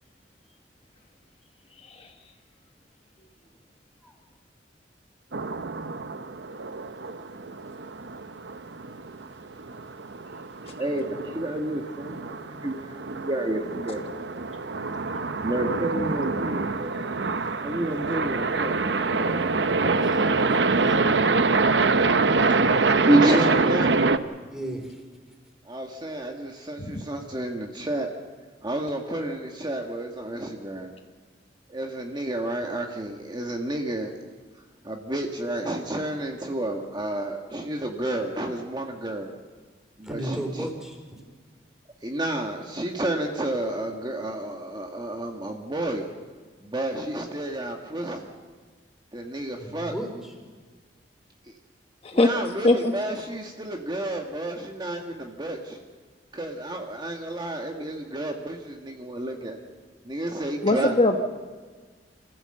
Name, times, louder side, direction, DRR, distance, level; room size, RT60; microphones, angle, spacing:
sound 1, 5.3-24.2, right 3 dB, 75° right, 0.9 m, -25 dB
voice 1, 10.8-14.0 14.3-14.4 15.4-17.0 17.6-20.4 22.5-22.6 23.0-24.1 25.6-28.1 28.6-30.9 31.7-34.1 34.8-39.3 40.0-40.7 42.0-46.1 46.6-48.3 49.1-49.9 51.4-51.5 52.1-55.8 56.3-59.6 60.0-60.9, right 1 dB, 25° right, 2 dB, 1.6 m, -30 dB
voice 2, 19.5-21.1 24.5-25.0 40.0-41.0 49.6-50.3, right 1 dB, 5° right, 2 dB, 4.2 m, -35 dB
voice 3, 60.6-61.2, left 2 dB, 35° left, 5 dB, 1.1 m, -21 dB
27.5 x 15.0 x 7.8 m, 1.5 s
head